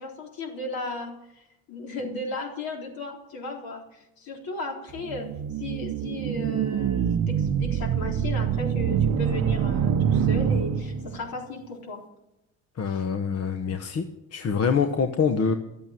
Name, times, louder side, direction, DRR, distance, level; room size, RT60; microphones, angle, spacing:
voice 1, 0.0-5.3 5.6-12.0 12.9-13.0, left 2 dB, 65° left, 1 dB, 3.9 m, -35 dB
sound 1, 5.0-11.3, right 8 dB, 45° right, 0.8 m, -25 dB
voice 2, 12.8-14.0 14.3-15.5, left 6 dB, 40° left, 8 dB, 1.1 m, -25 dB
12.5 x 8.4 x 9.4 m, 0.85 s
supercardioid pair, 85°, 39 cm